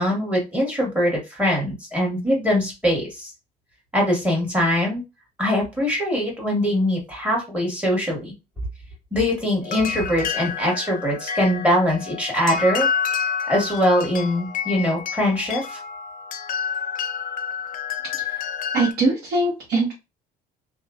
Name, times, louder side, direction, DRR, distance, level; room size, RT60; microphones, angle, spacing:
voice 1, 0.0-3.3 3.9-5.0 5.4-8.3 9.1-12.9 13.5-15.8, equal, 5° right, -1 dB, 1.7 m, -22 dB
sound 1, 9.6-18.9, left 7 dB, 55° left, 0.5 m, -29 dB
voice 2, 18.7-19.9, right 2 dB, 65° right, -3 dB, 1.1 m, -22 dB
3.0 x 2.3 x 2.4 m, 0.25 s
cardioid pair, 110°, 17 cm